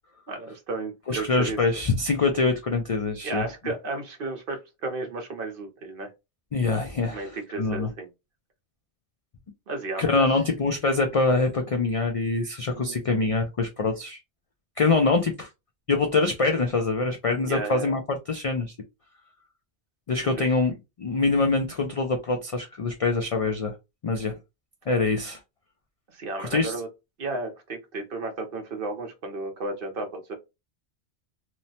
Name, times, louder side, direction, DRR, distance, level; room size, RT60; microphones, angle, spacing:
voice 1, 0.3-1.6 3.2-6.1 7.1-8.1 9.7-10.3 12.7-13.0 17.4-18.0 20.2-20.5 26.1-26.9 27.2-30.4, right 3 dB, 55° right, 0.8 m, -33 dB
voice 2, 1.1-3.5 6.5-7.9 10.0-14.2 14.8-15.5 15.9-18.7 20.1-23.7 24.0-24.3 24.9-25.4 26.4-26.7, left 3 dB, 60° left, 0.3 m, -24 dB
3.0 x 2.0 x 2.7 m
omnidirectional pair, 1.2 m